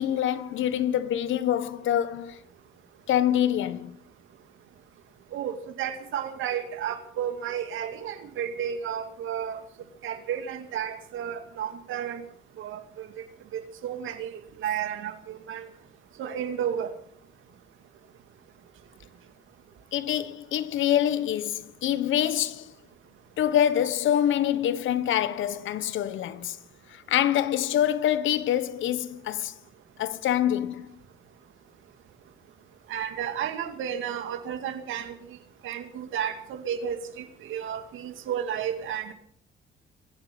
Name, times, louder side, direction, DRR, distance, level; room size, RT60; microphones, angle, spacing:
voice 1, 0.0-2.4 3.1-4.0 19.9-22.7 23.4-26.6 26.9-29.5 30.0-31.0, left 11 dB, 75° left, 1.2 m, -25 dB
voice 2, 5.3-9.6 10.0-12.2 12.6-13.1 13.5-15.7 16.2-16.9 32.9-35.4 35.6-39.1, right 9 dB, 85° right, 2.4 m, -32 dB
23.5 x 8.4 x 7.1 m
cardioid pair, 90°, 20 cm